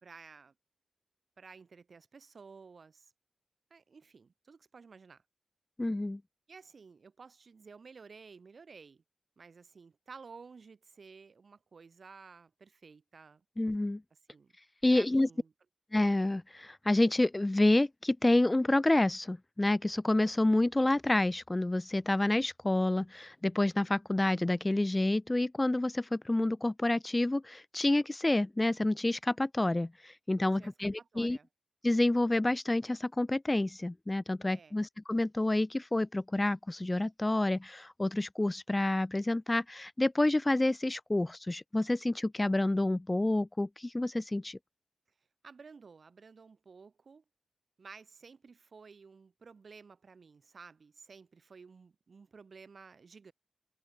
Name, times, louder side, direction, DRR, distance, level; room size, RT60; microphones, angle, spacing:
voice 1, 0.0-0.5 1.4-3.1 3.7-5.2 6.5-9.0 9.4-13.4 14.3-14.5 14.9-15.5 30.4-31.5 34.5-34.8 45.4-47.2 47.8-53.3, right 5 dB, 70° right, 2.7 m, -53 dB
voice 2, 5.8-6.2 13.6-14.0 14.8-15.3 15.9-31.4 31.8-44.6, left 2 dB, 25° left, 0.5 m, -28 dB
cardioid pair, 50°, 0 cm